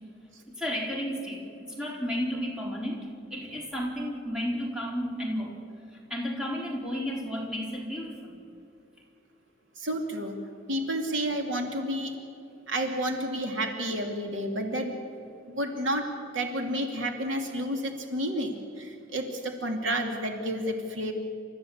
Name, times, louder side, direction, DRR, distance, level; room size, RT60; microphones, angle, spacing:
voice 1, 0.5-5.5 6.1-8.4, equal, 5° right, -2 dB, 3.9 m, -33 dB
voice 2, 9.8-10.4 10.7-12.2 12.7-15.0 15.5-21.1, right 1 dB, 75° right, 3 dB, 2.6 m, -30 dB
28.5 x 14.0 x 8.6 m, 2.5 s
head